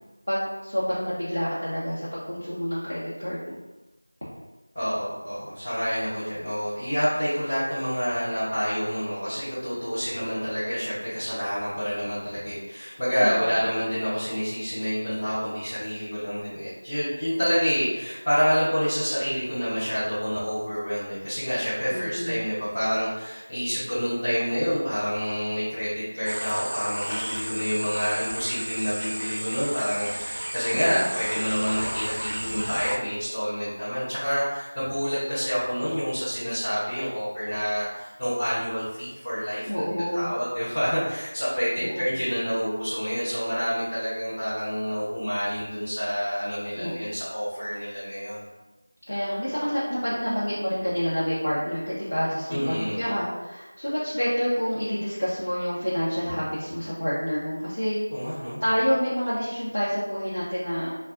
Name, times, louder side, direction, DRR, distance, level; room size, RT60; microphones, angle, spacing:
voice 1, 0.3-3.6 13.2-13.5 21.9-22.4 30.7-31.1 39.7-40.3 41.8-42.2 46.7-47.1 49.1-58.3 58.6-60.9, equal, 90° left, -10 dB, 0.9 m, -28 dB
voice 2, 4.7-39.7 40.1-48.5 52.5-53.1 58.1-58.6, equal, 15° left, -18 dB, 0.6 m, -28 dB
sound 1, 26.3-33.0, equal, 70° right, 0.4 m, -33 dB
2.4 x 2.2 x 3.7 m, 1.1 s
figure-of-eight pair, 175°, 0 cm